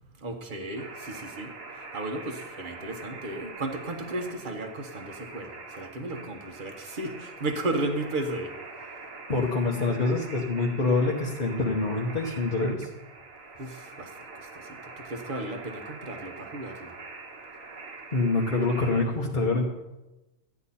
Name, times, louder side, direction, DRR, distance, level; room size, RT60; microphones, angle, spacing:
voice 1, 0.2-1.5 1.9-8.5 13.6-14.1 14.3-14.8 15.0-16.9, right 2 dB, 30° right, 5 dB, 1.1 m, -34 dB
sound 1, 0.8-19.0, right 3 dB, 50° right, 1.4 m, -44 dB
voice 2, 9.3-12.9 18.1-19.7, left 3 dB, 35° left, -3 dB, 0.9 m, -26 dB
13.5 x 9.6 x 4.2 m, 1.0 s
omnidirectional pair, 2.0 m